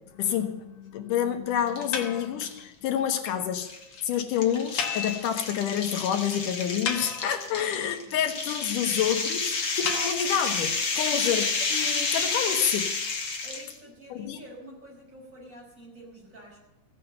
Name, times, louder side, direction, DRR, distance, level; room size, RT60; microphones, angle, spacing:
voice 1, 0.1-3.7 4.0-11.4 11.7-12.8 14.1-14.4, left 9 dB, 85° left, 6 dB, 2.9 m, -28 dB
sound 1, 1.7-2.1 2.5-2.6 3.6-13.7, left 4 dB, 40° left, 2.2 m, -30 dB
sound 2, 1.9-2.6 3.0-3.1 3.3-3.4 3.7-3.8 3.9-4.1 4.8-5.8 6.1-6.2 6.6-7.6 9.9-11.8, left 6 dB, 60° left, 2.2 m, -34 dB
voice 2, 13.4-16.6, equal, 25° right, -3 dB, 5.8 m, -47 dB
16.5 x 7.6 x 7.8 m, 0.92 s
omnidirectional pair, 3.6 m